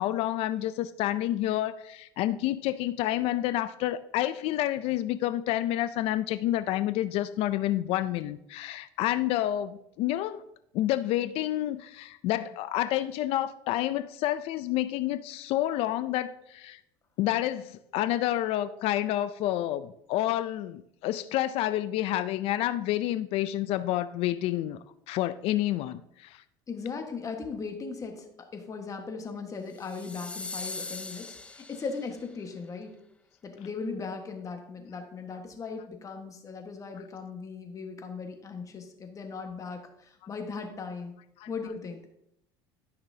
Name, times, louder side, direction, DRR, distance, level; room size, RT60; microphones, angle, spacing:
voice 1, 0.0-10.4 10.7-16.8 17.2-24.8 25.1-26.4 41.4-41.5, left 13 dB, 65° left, 13 dB, 0.5 m, -29 dB
voice 2, 26.7-32.9 33.4-41.1 41.5-42.0, left 4 dB, 30° left, 4 dB, 1.4 m, -38 dB
sound 1, 29.7-32.2, left 3 dB, 10° left, 0.5 m, -40 dB
13.5 x 5.9 x 2.8 m, 0.78 s
supercardioid pair, 110°, 11 cm